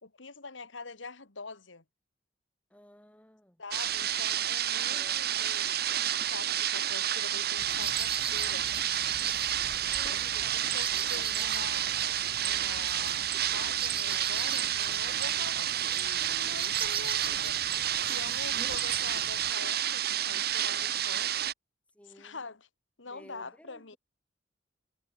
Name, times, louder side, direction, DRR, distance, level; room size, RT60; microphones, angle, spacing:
voice 1, 0.0-1.8 3.6-5.8 6.2-8.7 10.1-10.4 10.7-21.3 22.1-22.7 23.0-24.0, left 3 dB, 90° left, 2.2 m, -45 dB
voice 2, 2.7-3.6 4.7-5.2 9.9-10.6 10.9-11.7 21.9-22.5 23.0-24.0, equal, 5° left, 4.5 m, -55 dB
sound 1, 3.7-21.5, right 11 dB, 55° right, 1.7 m, -30 dB
sound 2, 7.6-19.5, right 7 dB, 30° right, 1.4 m, -39 dB
head